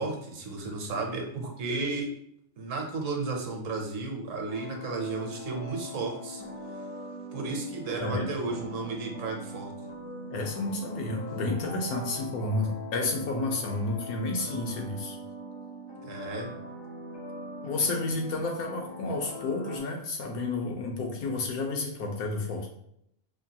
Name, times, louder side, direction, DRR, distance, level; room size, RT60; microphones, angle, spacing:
voice 1, 0.0-2.1 2.6-6.4 7.3-9.7 16.0-16.5, right 3 dB, 65° right, 1 dB, 1.0 m, -33 dB
sound 1, 4.5-19.8, equal, 35° left, 0.4 m, -41 dB
voice 2, 10.3-15.2 17.6-22.7, left 2 dB, 85° left, 1 dB, 1.3 m, -31 dB
5.0 x 2.2 x 2.8 m, 0.72 s
omnidirectional pair, 1.5 m